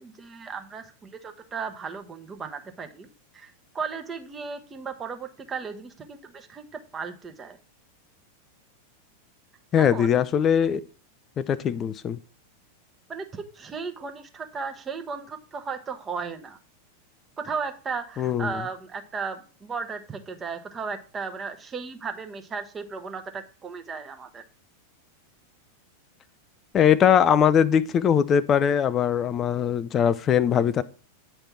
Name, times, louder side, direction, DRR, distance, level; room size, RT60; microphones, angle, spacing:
voice 1, 0.0-3.1 3.3-7.6 9.7-10.2 13.1-16.6 17.4-24.4, right 5 dB, 20° right, 1.0 m, -35 dB
voice 2, 9.7-10.8 11.4-12.2 18.2-18.6 26.7-30.8, left 8 dB, 25° left, 0.4 m, -21 dB
8.8 x 3.4 x 5.9 m
figure-of-eight pair, 90°, 0 cm